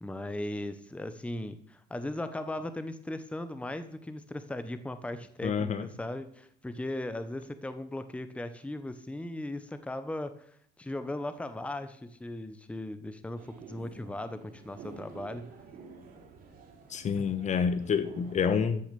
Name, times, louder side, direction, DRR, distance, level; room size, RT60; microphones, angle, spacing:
voice 1, 0.0-15.5 17.2-17.3, left 1 dB, 5° left, 0.9 m, -38 dB
voice 2, 5.4-5.9 16.9-18.8, left 6 dB, 45° left, 1.1 m, -28 dB
sound 1, 13.4-18.4, right 4 dB, 60° right, 3.9 m, -50 dB
13.5 x 6.2 x 6.9 m
cardioid pair, 110°, 17 cm